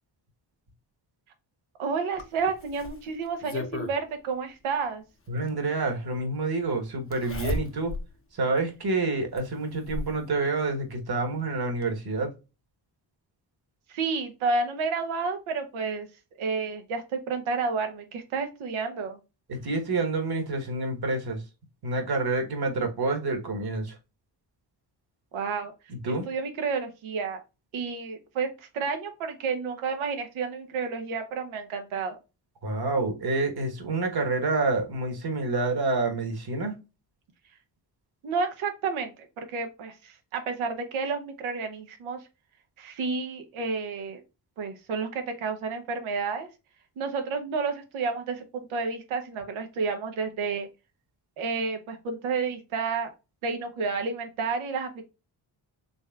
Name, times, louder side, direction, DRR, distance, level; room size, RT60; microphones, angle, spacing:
voice 1, 1.8-5.0 13.9-16.1 16.4-19.2 25.3-25.7 26.0-27.4 27.7-32.2 38.2-39.1 39.4-42.2 42.8-44.2 44.6-46.5 47.0-50.7 51.4-53.1 53.4-55.0, right 4 dB, 85° right, 6 dB, 0.9 m, -30 dB
Zipper (clothing), 2.2-4.0 5.4-5.5 7.1-8.1 8.6-8.7 9.4-10.2 11.4-11.5 11.8-11.9, left 2 dB, 30° left, 0.8 m, -34 dB
voice 2, 5.3-7.9 8.3-12.3 19.5-21.4 21.8-24.0 25.9-26.3 32.6-36.7, right 3 dB, 50° right, 5 dB, 1.3 m, -28 dB
4.1 x 3.2 x 2.3 m, 0.28 s
supercardioid pair, 45°, 47 cm